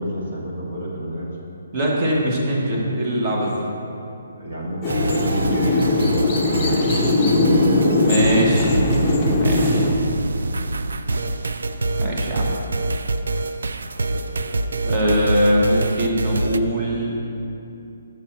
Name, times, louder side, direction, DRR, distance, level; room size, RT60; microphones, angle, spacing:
voice 1, 0.0-1.4 4.4-5.8 14.1-14.6, equal, 65° right, -3 dB, 1.7 m, -29 dB
voice 2, 1.7-3.7 6.7-7.1 8.0-8.8 9.3-9.9 12.0-12.6 14.8-17.3, equal, 25° right, -2 dB, 1.0 m, -22 dB
sound 1, 4.8-9.9, left 2 dB, 10° left, 0.7 m, -19 dB
sound 2, 4.8-16.6, right 2 dB, 85° right, 0.3 m, -25 dB
7.3 x 4.4 x 5.8 m, 2.7 s
hypercardioid pair, 170°, 0 cm